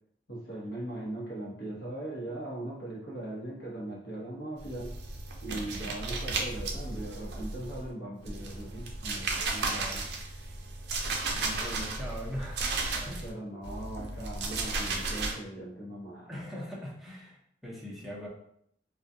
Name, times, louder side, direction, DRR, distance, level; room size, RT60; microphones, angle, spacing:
voice 1, 0.3-4.9 5.4-10.1 13.2-16.4, right 1 dB, 65° left, -5 dB, 1.0 m, -39 dB
sound 1, 4.6-7.9 8.2-13.3 13.6-15.3, right 3 dB, 65° right, 0.4 m, -34 dB
voice 2, 11.3-12.6 13.0-13.3 16.3-18.3, equal, ahead, -6 dB, 0.6 m, -40 dB
2.3 x 2.3 x 2.6 m, 0.70 s
head